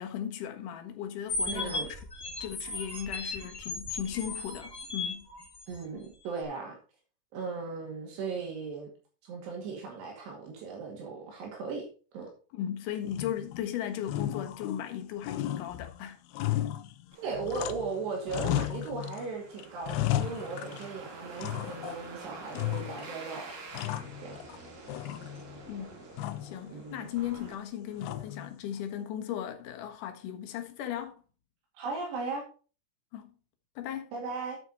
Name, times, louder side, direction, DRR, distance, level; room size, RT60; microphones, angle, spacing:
voice 1, 0.0-1.9 2.4-5.3 12.5-16.2 25.7-26.0 26.4-31.1 33.1-33.3 33.8-34.1, left 10 dB, 60° left, 2.5 m, -37 dB
sound 1, 1.3-5.8, left 3 dB, 15° left, 2.4 m, -36 dB
voice 2, 1.5-1.9 5.7-6.8 7.3-8.9 9.2-11.9 12.1-12.3 17.2-23.5 24.2-24.4 26.7-27.1 31.8-32.4 34.1-34.6, right 4 dB, 75° right, 4.3 m, -37 dB
sound 2, 13.1-13.7 14.0-15.0 15.2-18.0 18.3-19.3 19.6-21.0 21.4-22.1 22.5-23.2 23.5-24.6 24.9-25.6 26.2-26.6 28.0-28.5, left 13 dB, 80° left, 2.5 m, -34 dB
sound 3, 17.1-28.3, right 3 dB, 60° right, 5.3 m, -48 dB
9.0 x 8.3 x 4.0 m
omnidirectional pair, 4.9 m